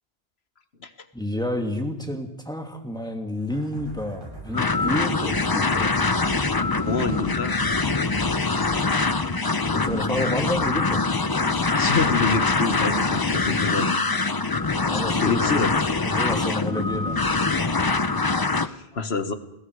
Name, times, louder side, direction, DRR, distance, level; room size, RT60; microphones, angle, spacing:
voice 1, 1.1-6.0 9.7-11.0 14.8-15.7 16.0-17.2, left 1 dB, 5° left, 4 dB, 2.6 m, -30 dB
sound 1, 3.5-10.3, right 1 dB, 20° right, 6.6 m, -42 dB
sound 2, 4.5-18.7, left 3 dB, 25° left, 0.7 m, -23 dB
voice 2, 6.8-7.6 11.7-14.0 15.2-15.9 18.6-19.3, left 4 dB, 75° left, 10 dB, 1.7 m, -27 dB
29.5 x 21.0 x 4.9 m, 0.86 s
omnidirectional pair, 1.1 m